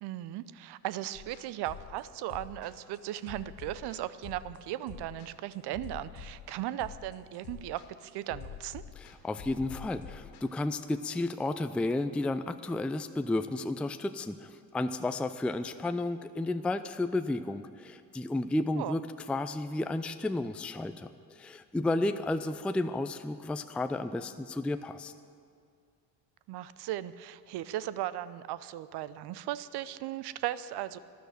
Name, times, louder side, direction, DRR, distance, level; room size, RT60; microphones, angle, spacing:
voice 1, 0.0-8.8 18.8-18.9 26.5-31.0, right 13 dB, 55° right, 16 dB, 0.7 m, -37 dB
sound 1, 1.1-10.4, left 7 dB, 55° left, 2.0 m, -47 dB
voice 2, 9.0-19.0 19.3-25.1, left 2 dB, ahead, 10 dB, 0.5 m, -32 dB
13.0 x 11.5 x 7.8 m, 2.4 s
figure-of-eight pair, 50°, 49 cm